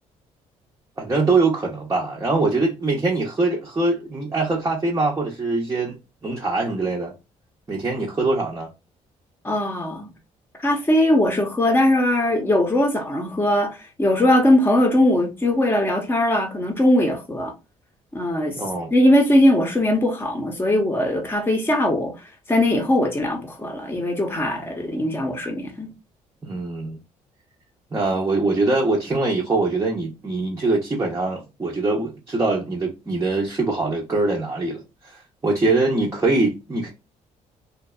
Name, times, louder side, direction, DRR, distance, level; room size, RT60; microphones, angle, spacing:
voice 1, 1.0-6.0 6.2-7.1 7.7-8.7 18.6-18.9 26.4-27.0 27.9-36.9, right 3 dB, 20° right, 0.7 m, -23 dB
voice 2, 9.4-10.1 10.6-17.5 18.1-18.6 18.9-22.2 22.5-25.9, left 1 dB, 15° left, 0.8 m, -20 dB
2.6 x 2.3 x 2.2 m
cardioid pair, 85°, 14 cm